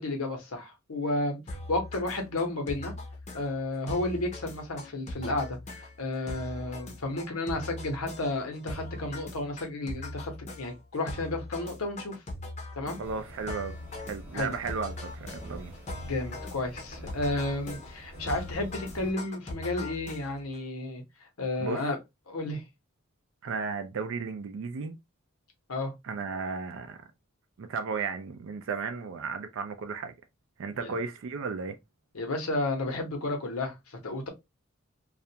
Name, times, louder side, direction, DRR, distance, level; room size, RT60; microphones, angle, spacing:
voice 1, 0.0-1.4 1.7-2.9 3.3-12.2 12.8-13.0 14.3-14.5 16.0-22.0 22.3-22.6 25.7-25.9 30.7-30.9 32.1-34.3, left 2 dB, 85° left, 0.9 m, -32 dB
sound 1, 1.5-20.6, left 2 dB, 30° left, 0.6 m, -41 dB
sound 2, 13.0-19.1, equal, 10° right, 0.8 m, -46 dB
voice 2, 13.0-13.8 14.1-15.7 21.6-21.8 23.4-25.0 26.0-27.0 27.6-30.1 30.6-31.8, right 5 dB, 65° right, 0.4 m, -34 dB
2.4 x 2.2 x 2.7 m
head